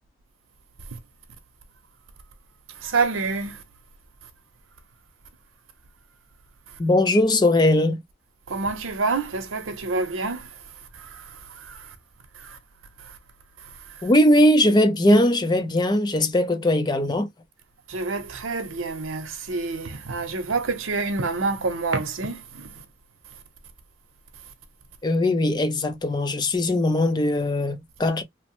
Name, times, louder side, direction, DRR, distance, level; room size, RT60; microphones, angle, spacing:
voice 1, 2.8-3.6 8.5-10.5 11.1-11.2 11.7-11.8 12.4-12.6 17.9-22.7, right 3 dB, 80° right, 0.8 m, -27 dB
voice 2, 6.8-8.0 14.0-17.3 25.0-28.2, left 1 dB, 20° left, 0.4 m, -20 dB
3.0 x 2.1 x 2.9 m
head